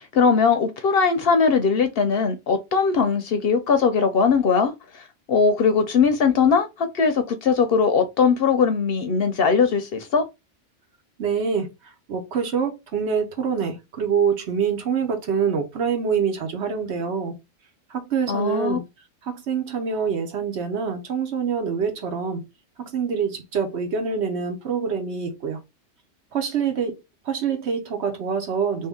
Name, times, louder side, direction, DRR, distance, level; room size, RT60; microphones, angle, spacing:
voice 1, 0.0-10.2 18.3-18.8, left 5 dB, 60° left, 0.7 m, -20 dB
voice 2, 11.2-11.7 12.1-17.3 17.9-18.8 19.3-22.4 22.8-25.6 26.3-27.0 27.3-28.9, right 6 dB, 65° right, 1.1 m, -25 dB
2.8 x 2.7 x 3.4 m
omnidirectional pair, 1.2 m